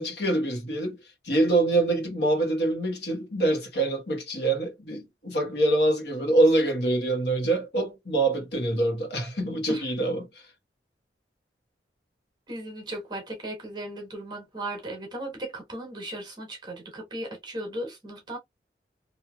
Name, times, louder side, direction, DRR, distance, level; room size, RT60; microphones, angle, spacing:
voice 1, 0.0-10.5, right 2 dB, 70° left, 1.3 m, -25 dB
voice 2, 12.5-18.4, right 1 dB, 25° right, 1.2 m, -36 dB
3.0 x 2.7 x 2.2 m
head